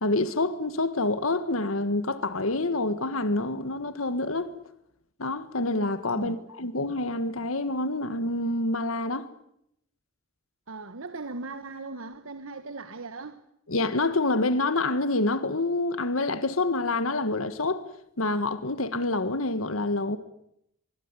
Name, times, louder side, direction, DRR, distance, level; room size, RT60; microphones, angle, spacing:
voice 1, 0.0-4.5 5.2-9.3 13.7-17.8 18.2-20.2, left 2 dB, 90° left, 1.7 m, -27 dB
voice 2, 10.7-13.4, right 3 dB, 85° right, 1.4 m, -38 dB
25.0 x 22.0 x 9.9 m
head